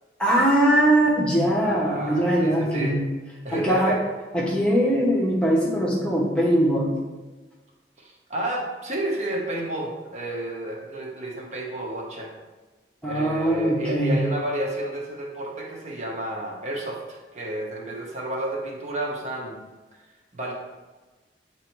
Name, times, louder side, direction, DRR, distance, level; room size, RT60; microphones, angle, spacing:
voice 1, 0.2-3.0 3.5-4.0 4.3-7.0 13.0-14.2, right 1 dB, 5° left, -4 dB, 0.9 m, -21 dB
voice 2, 1.6-3.0 3.4-4.0 8.0-12.3 13.0-19.6 20.3-20.5, right 1 dB, 40° right, -2 dB, 1.2 m, -31 dB
8.3 x 3.0 x 4.6 m, 1.2 s
head